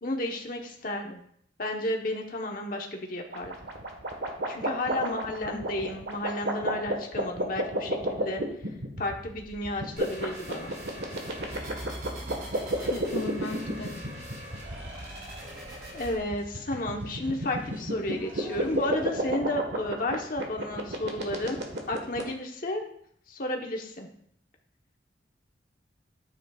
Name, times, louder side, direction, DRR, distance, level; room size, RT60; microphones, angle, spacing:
voice 1, 0.0-1.2 1.6-3.6 4.5-8.4 9.0-10.7 15.9-22.8 23.3-24.1, left 1 dB, 50° left, 1 dB, 1.2 m, -32 dB
sound 1, 3.3-22.2, right 1 dB, 70° right, 1.5 m, -31 dB
voice 2, 5.0-5.7 12.9-14.0, left 3 dB, 80° left, 3 dB, 0.9 m, -36 dB
sound 2, 10.0-16.1, right 1 dB, 55° right, 3.2 m, -42 dB
sound 3, 10.8-19.0, equal, 10° right, 2.9 m, -50 dB
10.5 x 9.0 x 2.5 m, 0.66 s
head